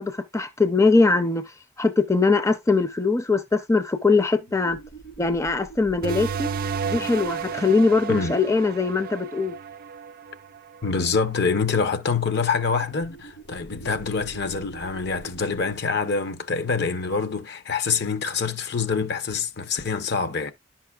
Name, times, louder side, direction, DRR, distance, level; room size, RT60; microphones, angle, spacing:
voice 1, 0.0-4.8 5.2-6.5 6.9-9.5, left 3 dB, 15° left, 0.5 m, -21 dB
sound 1, 4.3-9.6 12.7-17.9, right 4 dB, 75° left, 3.7 m, -46 dB
sound 2, 6.0-11.2, right 6 dB, 50° right, 0.4 m, -32 dB
voice 2, 10.8-20.5, left 5 dB, 60° left, 0.8 m, -25 dB
10.5 x 5.7 x 2.3 m
head